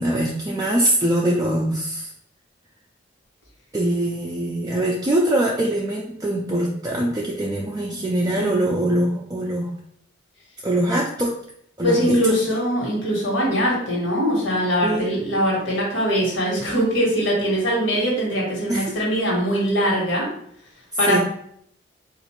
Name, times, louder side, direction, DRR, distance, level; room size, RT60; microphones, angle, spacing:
voice 1, 0.0-2.1 3.7-9.7 10.6-11.3 11.8-12.2 14.8-15.2 18.7-19.0 21.1-21.2, right 1 dB, 20° right, -3 dB, 0.3 m, -23 dB
voice 2, 8.3-8.7 11.8-20.3 21.0-21.2, equal, 75° left, -3 dB, 1.3 m, -22 dB
3.8 x 2.5 x 3.1 m, 0.69 s
head